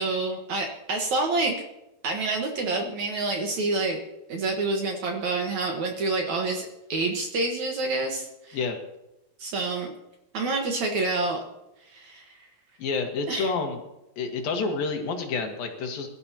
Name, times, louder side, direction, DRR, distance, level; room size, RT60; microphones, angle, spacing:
voice 1, 0.0-1.6 2.0-4.0 4.3-8.6 9.4-9.9 10.3-11.4 11.9-12.3 13.3-13.5, right 3 dB, 60° right, 2 dB, 2.3 m, -28 dB
voice 2, 12.8-13.8 14.2-16.1, left 4 dB, 70° left, 3 dB, 3.1 m, -28 dB
22.5 x 12.5 x 2.9 m, 0.92 s
omnidirectional pair, 4.5 m